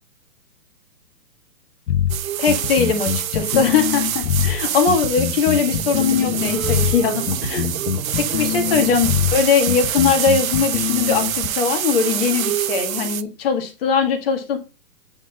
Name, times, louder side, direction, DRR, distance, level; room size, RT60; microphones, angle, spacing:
sound 1, 1.9-11.5, left 9 dB, 70° left, 1.3 m, -24 dB
sound 2, 2.1-13.2, right 10 dB, 60° right, 0.8 m, -26 dB
voice 1, 2.4-7.7 8.2-14.6, left 6 dB, 35° left, 5 dB, 1.8 m, -20 dB
sound 3, 5.6-9.8, right 7 dB, 75° right, 1.5 m, -34 dB
9.0 x 4.0 x 4.1 m, 0.30 s
hypercardioid pair, 155°, 48 cm